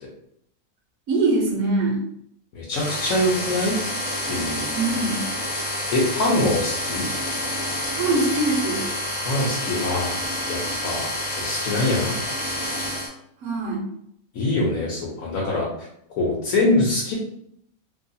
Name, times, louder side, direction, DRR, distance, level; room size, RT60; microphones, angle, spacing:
voice 1, 1.1-2.0 4.7-5.3 7.9-9.0 13.4-13.8, right 2 dB, 65° right, -1 dB, 1.1 m, -23 dB
voice 2, 2.5-3.7 4.3-4.7 5.9-7.1 9.2-10.2 10.5-11.0 11.4-12.2 14.3-15.7 16.2-17.1, left 2 dB, 70° left, -4 dB, 1.1 m, -23 dB
sound 1, 2.7-13.1, left 1 dB, 40° left, 0.8 m, -28 dB
2.9 x 2.3 x 2.6 m, 0.70 s
omnidirectional pair, 1.5 m